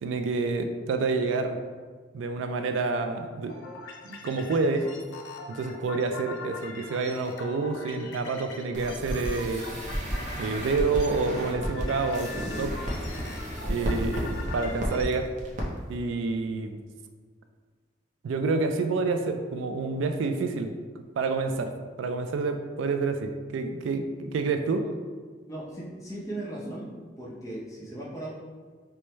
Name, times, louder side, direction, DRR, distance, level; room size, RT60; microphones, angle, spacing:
voice 1, 0.0-1.6 2.1-3.5 4.0-4.9 5.5-9.6 10.3-12.8 13.7-15.3 15.9-16.8 18.2-20.7 21.2-21.7 22.0-24.8, right 3 dB, 80° right, 6 dB, 0.3 m, -28 dB
sound 1, 3.5-15.3, left 3 dB, 90° left, 0.5 m, -43 dB
sound 2, 8.7-15.1 15.4-15.6 15.9-16.0, equal, 40° right, 0.6 m, -33 dB
voice 2, 25.5-28.4, right 1 dB, 15° left, -5 dB, 0.7 m, -38 dB
4.5 x 2.1 x 3.0 m, 1.5 s
head